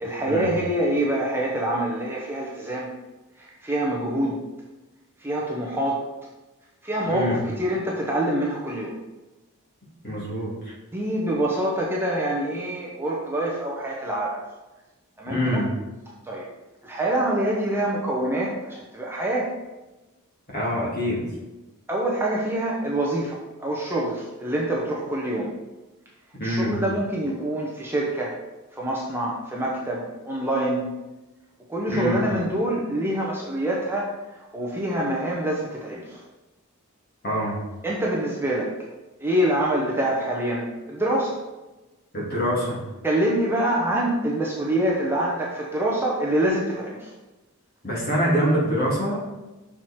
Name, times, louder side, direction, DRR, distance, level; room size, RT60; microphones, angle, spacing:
voice 1, 0.0-2.9 3.4-4.4 5.2-6.0 6.8-8.9 10.9-14.4 15.2-15.6 16.2-16.5 16.8-19.5 21.9-25.5 26.4-28.3 28.7-30.9 31.7-36.2 37.8-38.7 39.2-41.4 43.0-47.1, right 1 dB, 10° right, -4 dB, 0.8 m, -25 dB
voice 2, 10.0-10.7 15.3-15.7 20.5-21.2 26.4-26.7 31.9-32.2 37.2-37.6 42.1-42.8 47.8-49.2, equal, 45° left, -5 dB, 2.3 m, -25 dB
6.2 x 4.7 x 4.2 m, 1.1 s
head